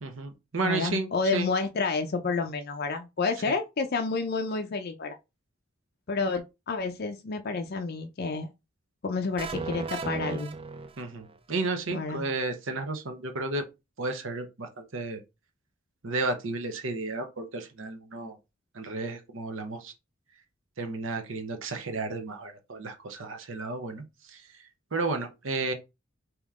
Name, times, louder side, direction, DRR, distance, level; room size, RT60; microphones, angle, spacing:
voice 1, 0.0-1.5 3.5-3.6 11.0-13.7 14.0-15.2 16.0-18.4 18.7-19.9 20.8-24.4 24.9-25.7, right 3 dB, 75° right, 0.9 m, -33 dB
voice 2, 0.6-5.2 6.1-8.5 9.0-10.5 11.9-12.3, left 4 dB, 50° left, 0.5 m, -30 dB
sound 1, 9.4-11.4, right 4 dB, 25° right, 0.3 m, -35 dB
3.5 x 2.9 x 3.6 m
head